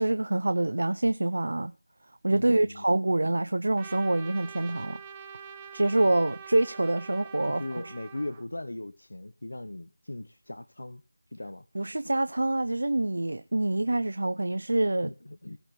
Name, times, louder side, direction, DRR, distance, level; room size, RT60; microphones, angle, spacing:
voice 1, 0.0-1.7 2.2-5.0 5.7-7.8 11.7-15.1, right 2 dB, 70° right, 0.7 m, -26 dB
voice 2, 2.3-2.8 7.4-11.0 11.3-11.7 15.0-15.6, left 1 dB, 80° left, 1.1 m, -39 dB
Trumpet, 3.8-8.4, right 7 dB, 15° right, 0.8 m, -45 dB
17.0 x 11.5 x 3.9 m
figure-of-eight pair, 175°, 0 cm